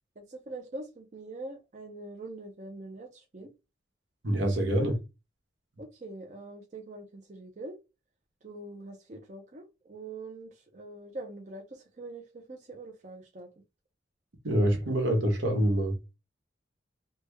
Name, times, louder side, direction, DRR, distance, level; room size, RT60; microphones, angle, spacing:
voice 1, 0.2-3.5 5.8-7.8 8.4-13.5, right 2 dB, 40° right, 0.5 m, -43 dB
voice 2, 4.2-5.0 14.4-15.9, right 1 dB, 75° right, 1.1 m, -26 dB
3.3 x 2.2 x 3.2 m
head